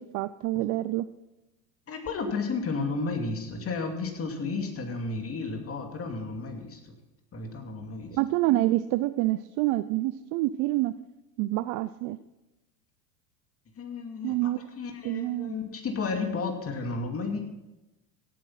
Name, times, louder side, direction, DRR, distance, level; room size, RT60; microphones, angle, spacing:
voice 1, 0.1-1.1 8.1-10.9 11.4-12.2 14.2-14.6 15.0-15.5, right 17 dB, 40° right, 13 dB, 0.5 m, -27 dB
voice 2, 1.9-7.0 7.3-8.2 13.8-17.4, left 4 dB, 30° left, 4 dB, 2.6 m, -33 dB
16.5 x 9.0 x 5.9 m, 1.0 s
hypercardioid pair, 105°, 49 cm